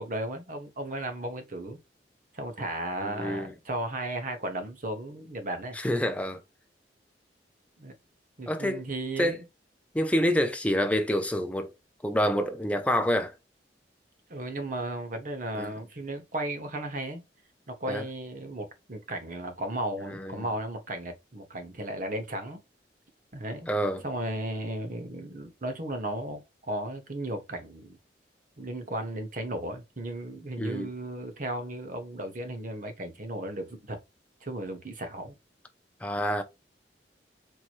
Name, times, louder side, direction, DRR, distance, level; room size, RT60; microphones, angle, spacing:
voice 1, 0.0-1.8 2.3-5.8 7.8-7.9 8.4-9.4 14.3-17.2 17.7-22.6 23.3-23.7 24.0-28.0 28.6-34.0 34.4-35.3, right 1 dB, 50° right, 1.1 m, -35 dB
voice 2, 3.0-3.5 5.8-6.4 8.5-8.8 9.2-9.4 9.9-11.7 12.0-13.3 15.6-15.7 17.9-18.0 20.1-20.4 23.7-24.0 30.6-30.9 36.0-36.4, equal, 10° left, 0.6 m, -27 dB
4.5 x 2.9 x 2.5 m
head